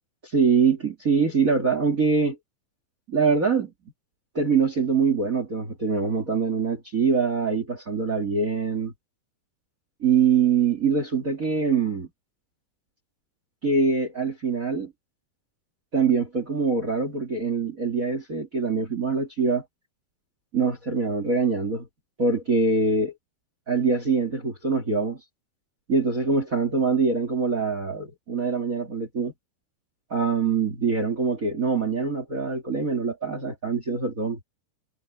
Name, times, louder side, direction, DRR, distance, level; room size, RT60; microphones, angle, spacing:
voice 1, 0.2-2.4 3.1-3.7 4.3-8.9 10.0-12.1 13.6-14.9 15.9-19.6 20.5-21.9 22.2-23.1 23.7-25.2 25.9-29.3 30.1-34.4, right 5 dB, 35° right, 1.3 m, -24 dB
omnidirectional pair, 4.7 m